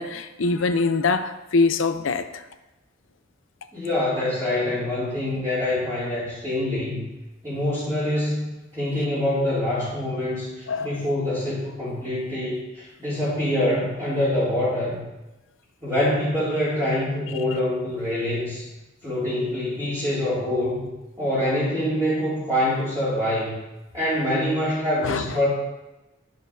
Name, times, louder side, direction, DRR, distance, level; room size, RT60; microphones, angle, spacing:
voice 1, 0.0-2.4 10.7-10.9 25.0-25.4, left 4 dB, 80° left, 10 dB, 0.6 m, -23 dB
voice 2, 3.7-7.1 7.4-8.4 8.7-15.0 15.8-18.6 19.0-20.8 21.2-23.6 23.9-25.5, left 1 dB, 20° right, -12 dB, 2.5 m, -25 dB
12.0 x 6.6 x 2.7 m, 1.0 s
head